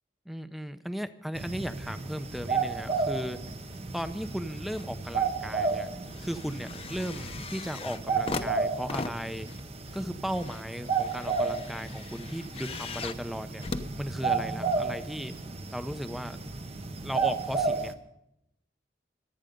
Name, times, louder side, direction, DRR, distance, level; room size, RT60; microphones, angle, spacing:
voice 1, 0.3-3.4 3.9-5.9 6.2-9.5 9.9-13.6 14.0-15.4 15.7-16.4 17.0-17.9, equal, ahead, 10 dB, 0.7 m, -36 dB
sound 1, 1.3-17.9, right 4 dB, 35° right, 1.0 m, -33 dB
sound 2, 4.2-4.9 5.3-14.7 15.4-15.5, left 3 dB, 35° left, 0.8 m, -40 dB
25.0 x 9.0 x 5.3 m, 0.78 s
head